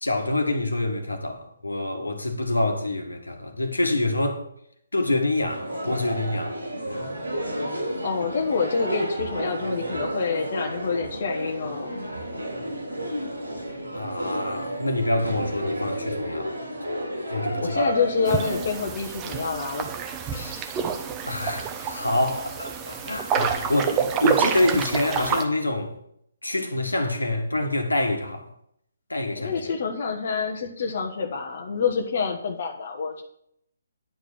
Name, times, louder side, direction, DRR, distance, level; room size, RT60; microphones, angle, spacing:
voice 1, 0.0-4.4 4.9-6.6 6.8-7.1 13.9-16.5 17.3-17.9 21.3-25.9 26.4-28.5 29.1-29.5, left 2 dB, 85° left, 1.7 m, -26 dB
sound 1, 5.5-18.6, right 1 dB, 85° right, 3.9 m, -31 dB
voice 2, 8.0-11.9 17.6-19.9 20.3-20.6 29.4-33.2, left 5 dB, 45° left, 1.3 m, -27 dB
sound 2, 18.3-25.4, right 6 dB, 20° right, 0.9 m, -28 dB
10.5 x 5.2 x 6.7 m
figure-of-eight pair, 140°, 0 cm